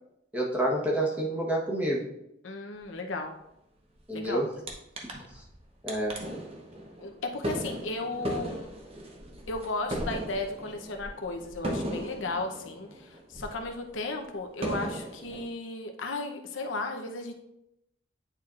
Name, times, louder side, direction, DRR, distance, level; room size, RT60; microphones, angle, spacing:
voice 1, 0.3-2.0 4.1-4.5 5.3-5.4 5.8-6.1, right 1 dB, 10° right, -3 dB, 1.2 m, -28 dB
voice 2, 2.4-3.3 4.1-4.4 7.0-8.7 9.5-17.3, left 2 dB, 90° left, 3 dB, 0.8 m, -35 dB
sound 1, 4.7-4.8 5.0-5.6 5.9-13.8 14.2-14.3 14.6-15.5, equal, 30° right, 0.9 m, -37 dB
9.1 x 4.4 x 2.5 m, 0.81 s
head